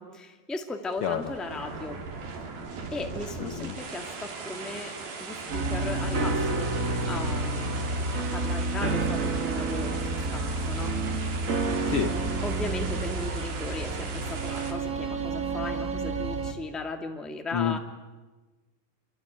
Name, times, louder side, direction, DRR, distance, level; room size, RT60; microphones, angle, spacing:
voice 1, 0.0-2.0 2.4-2.5 2.9-4.9 5.2-6.7 7.1-7.9 8.2-11.0 12.4-17.8, left 2 dB, ahead, 4 dB, 1.0 m, -37 dB
sound 1, 0.8-14.7, right 4 dB, 80° right, 5.0 m, -39 dB
voice 2, 1.0-1.3 3.4-3.8 11.9-12.2 17.5-17.8, left 8 dB, 90° left, 7 dB, 1.2 m, -29 dB
sound 2, 5.5-16.5, right 3 dB, 40° right, 1.1 m, -29 dB
27.0 x 23.0 x 9.2 m, 1.2 s
omnidirectional pair, 4.1 m